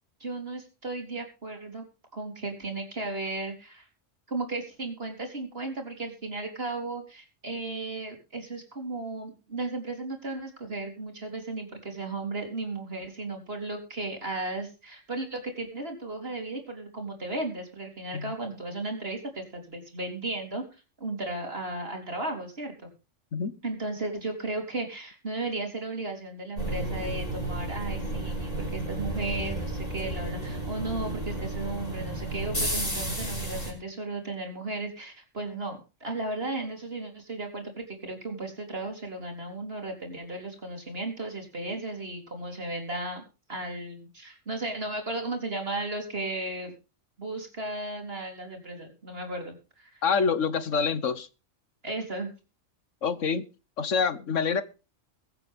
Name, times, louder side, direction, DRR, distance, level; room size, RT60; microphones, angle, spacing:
voice 1, 0.2-1.8 2.1-3.9 4.3-20.6 21.0-22.9 23.6-43.2 43.5-46.7 47.2-50.1 51.8-52.3, right 2 dB, 50° right, 4 dB, 4.1 m, -35 dB
sound 1, 26.6-33.7, right 1 dB, 30° left, 5.8 m, -32 dB
voice 2, 50.0-51.3 53.0-53.5 53.8-54.6, left 5 dB, 75° left, 14 dB, 1.5 m, -26 dB
22.5 x 8.7 x 3.6 m, 0.32 s
omnidirectional pair, 1.3 m